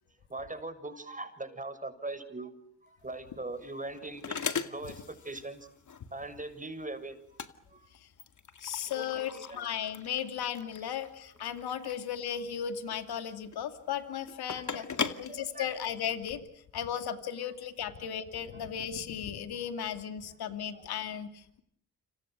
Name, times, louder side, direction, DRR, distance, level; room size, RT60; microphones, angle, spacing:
voice 1, 0.3-2.5 2.8-5.7 6.1-7.2 7.7-7.9 8.9-9.7 11.8-11.9 14.5-15.7 18.5-18.6 20.7-20.8, right 2 dB, 20° right, 9 dB, 6.7 m, -41 dB
sound 1, 3.0-16.3, left 6 dB, 50° left, 2.3 m, -40 dB
voice 2, 8.6-14.8 15.2-16.4 16.7-21.6, left 9 dB, 75° left, 8 dB, 2.8 m, -36 dB
29.5 x 27.5 x 6.6 m, 0.68 s
supercardioid pair, 55°, 39 cm